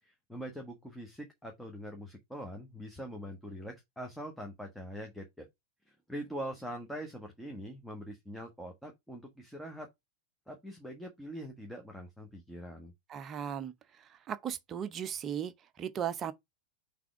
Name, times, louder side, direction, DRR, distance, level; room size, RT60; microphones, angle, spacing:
voice 1, 0.0-5.5 5.9-9.9 10.5-12.9, equal, ahead, 1.3 m, -43 dB
voice 2, 13.1-13.7 14.3-16.3, right 9 dB, 25° right, 0.7 m, -36 dB
5.9 x 3.4 x 4.8 m
figure-of-eight pair, 90°, 0 cm